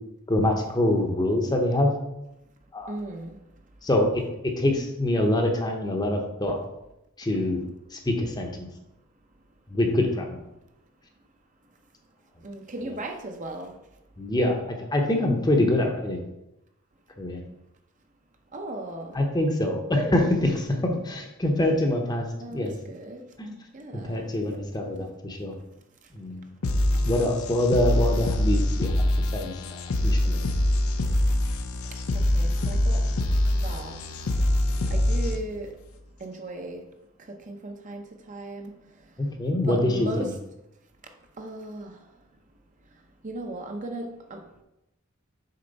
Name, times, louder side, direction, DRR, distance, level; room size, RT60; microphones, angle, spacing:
voice 1, 0.3-1.9 2.7-2.9 3.8-4.1 4.4-6.6 7.2-7.6 7.9-8.7 9.7-10.4 14.2-14.6 14.9-16.2 17.2-17.4 19.1-22.2 22.5-22.7 23.4-23.5 23.9-25.5 26.1-26.4 27.1-29.1 29.3-29.5 30.0-30.4 39.2-40.3, left 1 dB, 20° left, 3 dB, 0.7 m, -25 dB
voice 2, 2.9-3.4 12.4-13.7 18.5-19.2 22.4-23.2 23.7-24.3 32.3-33.0 33.6-34.0 34.9-35.7 36.2-36.8 37.3-38.0 38.3-38.7 39.6-40.3 41.4-41.9 43.2-44.4, right 1 dB, 35° right, 4 dB, 0.6 m, -36 dB
sound 1, 26.6-35.6, left 1 dB, 85° left, 0.6 m, -24 dB
6.6 x 4.4 x 4.0 m, 0.90 s
head